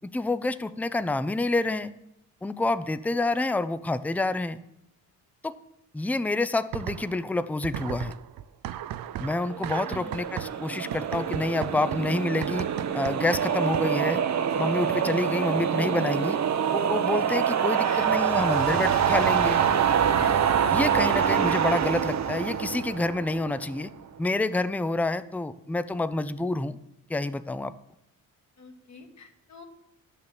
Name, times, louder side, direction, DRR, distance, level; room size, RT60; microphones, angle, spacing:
voice 1, 0.0-1.9 2.4-4.6 5.4-5.5 5.9-8.1 9.2-12.7 12.9-14.2 14.6-16.4 16.7-19.6 20.7-23.9 24.2-26.8 27.1-27.7, left 2 dB, 5° left, 13 dB, 0.5 m, -28 dB
sound 1, 6.7-7.3 7.6-14.1, right 11 dB, 75° right, 0.6 m, -37 dB
voice 2, 9.5-10.1 17.8-18.1 20.1-20.6 28.6-29.6, left 3 dB, 50° left, 2 dB, 1.7 m, -46 dB
sound 2, 9.5-23.8, right 8 dB, 50° right, 1.0 m, -25 dB
11.0 x 6.8 x 7.3 m, 0.82 s
cardioid pair, 85°, 35 cm